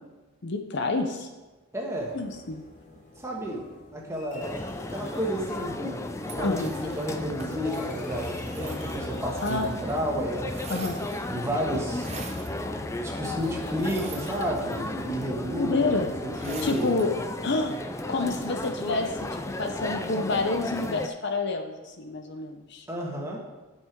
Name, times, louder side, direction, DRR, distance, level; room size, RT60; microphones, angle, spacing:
voice 1, 0.4-1.3 2.1-2.6 6.4-6.7 9.4-9.8 10.7-11.0 15.6-16.1 16.6-17.1 17.4-17.8 18.1-22.9, left 3 dB, 50° left, 5 dB, 0.7 m, -28 dB
voice 2, 1.7-2.2 3.2-3.6 3.9-4.6 4.9-6.0 6.3-10.8 11.3-12.1 13.0-17.1 22.9-23.5, equal, 10° right, -2 dB, 1.4 m, -31 dB
sound 1, 2.0-16.7, left 1 dB, 35° left, 1.2 m, -44 dB
sound 2, 4.4-21.1, left 2 dB, 15° left, 0.3 m, -34 dB
sound 3, 6.2-10.0 10.2-11.4 11.9-12.6 13.7-14.9 16.3-17.1, right 4 dB, 30° right, 0.9 m, -44 dB
11.0 x 5.7 x 4.6 m, 1.2 s
head